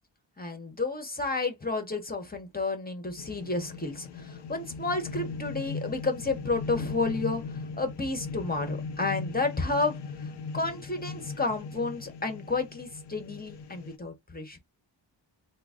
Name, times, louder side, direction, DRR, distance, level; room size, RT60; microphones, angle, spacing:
voice 1, 0.4-10.3 10.5-14.6, left 3 dB, 20° left, 1.1 m, -31 dB
sound 1, 3.2-14.0, left 4 dB, 65° left, 0.6 m, -39 dB
3.8 x 2.0 x 3.6 m
wide cardioid pair, 90°, 44 cm